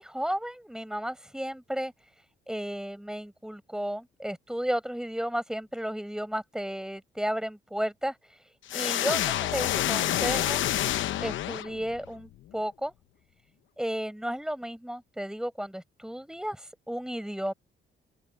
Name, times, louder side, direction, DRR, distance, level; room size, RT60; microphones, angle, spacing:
voice 1, 0.0-1.9 2.5-8.2 8.7-10.6 11.2-12.9 13.8-17.5, equal, 5° right, 6.1 m, -33 dB
sound 1, 8.7-12.1, left 13 dB, 75° left, 0.9 m, -28 dB
open air
cardioid pair, 90°, 20 cm